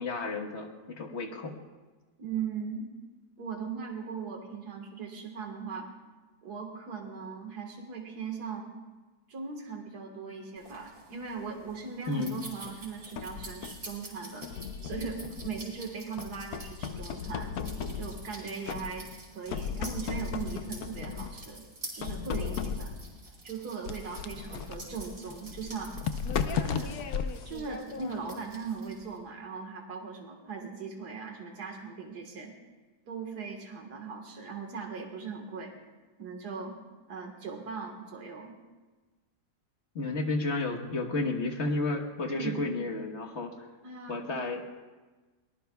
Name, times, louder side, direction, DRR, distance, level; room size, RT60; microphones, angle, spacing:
voice 1, 0.0-1.5 12.1-12.4 39.9-43.7 44.1-44.7, left 2 dB, 45° left, 3 dB, 1.5 m, -32 dB
voice 2, 2.2-3.0 3.4-5.9 6.4-8.7 9.3-14.5 14.8-17.5 17.9-19.1 19.3-21.6 21.9-23.0 23.4-25.9 26.5-27.0 27.4-32.5 33.1-35.7 36.2-36.8 37.1-38.5 42.3-42.6 43.8-44.3, right 5 dB, 80° right, 2 dB, 2.1 m, -39 dB
sound 1, 10.6-29.2, right 2 dB, 40° right, 4.3 m, -49 dB
sound 2, 12.7-13.9 14.4-15.8 16.2-18.3 18.7-19.2 19.5-21.5 22.0-23.1 23.9-28.4, left 6 dB, 70° left, 1.2 m, -36 dB
23.0 x 19.0 x 2.3 m, 1.3 s
omnidirectional pair, 1.7 m